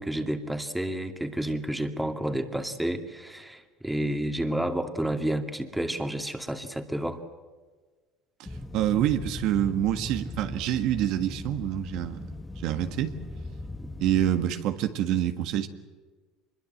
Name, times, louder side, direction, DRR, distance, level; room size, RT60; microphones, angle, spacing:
voice 1, 0.0-7.2 13.8-13.9, right 1 dB, 5° right, 6 dB, 2.4 m, -30 dB
sound 1, 8.5-14.5, left 2 dB, 15° left, 1.4 m, -39 dB
voice 2, 8.7-12.3 12.6-13.2 14.0-15.7, right 11 dB, 65° right, 8 dB, 1.7 m, -26 dB
24.5 x 22.0 x 8.0 m, 1.4 s
supercardioid pair, 85°, 0 cm